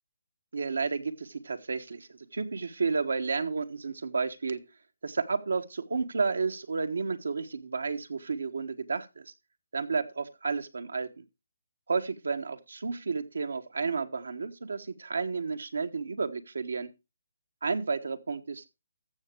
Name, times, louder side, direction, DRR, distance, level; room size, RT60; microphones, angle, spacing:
voice 1, 0.5-4.6 5.0-9.3 9.7-11.2 11.9-16.9 17.6-18.7, right 4 dB, 85° right, 1.3 m, -32 dB
14.5 x 6.3 x 4.5 m
hypercardioid pair, 160°, 0 cm